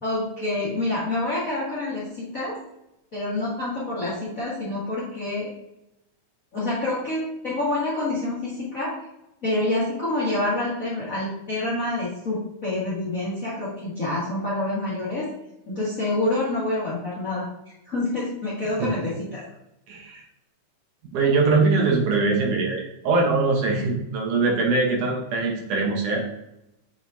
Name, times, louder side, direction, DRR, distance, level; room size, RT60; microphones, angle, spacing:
voice 1, 0.0-2.6 3.1-5.5 6.5-8.9 9.4-15.2 15.7-17.4 17.8-19.4, left 2 dB, 40° left, -8 dB, 1.2 m, -27 dB
voice 2, 19.9-20.2 21.1-26.2, right 3 dB, 70° right, 0 dB, 2.5 m, -22 dB
7.3 x 5.0 x 2.7 m, 0.88 s
omnidirectional pair, 3.7 m